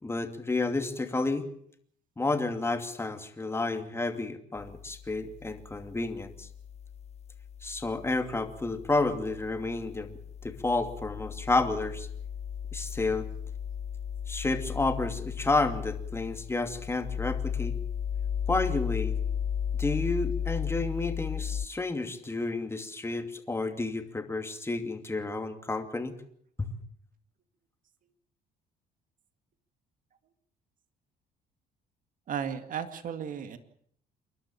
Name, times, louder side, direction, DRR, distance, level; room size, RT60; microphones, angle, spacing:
voice 1, 0.0-1.5 2.2-6.5 7.6-12.1 12.7-13.3 14.3-17.8 18.5-19.2 19.8-26.1 26.6-26.7, left 2 dB, 15° left, 7 dB, 2.6 m, -31 dB
sound 1, 4.6-21.7, left 8 dB, 40° left, 0.8 m, -35 dB
voice 2, 32.3-33.6, right 8 dB, 50° right, 10 dB, 2.1 m, -34 dB
28.0 x 12.0 x 8.7 m, 0.65 s
cardioid pair, 110°, 17 cm